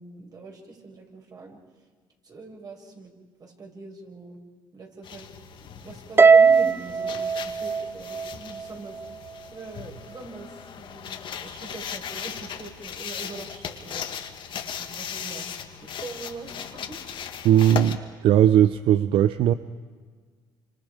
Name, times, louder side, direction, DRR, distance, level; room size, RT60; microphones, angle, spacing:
voice 1, 0.0-1.6 2.2-3.1 3.4-4.4 4.7-5.3 5.6-9.0 9.5-10.5 10.8-14.1 14.5-15.4 15.8-17.1, right 3 dB, 45° right, 1 dB, 6.2 m, -42 dB
sound 1, 5.0-18.0, left 8 dB, 60° left, 1.8 m, -38 dB
Harp, 6.2-8.6, right 5 dB, 25° right, 0.6 m, -19 dB
voice 2, 17.4-19.5, right 11 dB, 70° right, 13 dB, 0.7 m, -19 dB
28.5 x 26.0 x 5.1 m, 1.5 s
supercardioid pair, 75°, 9 cm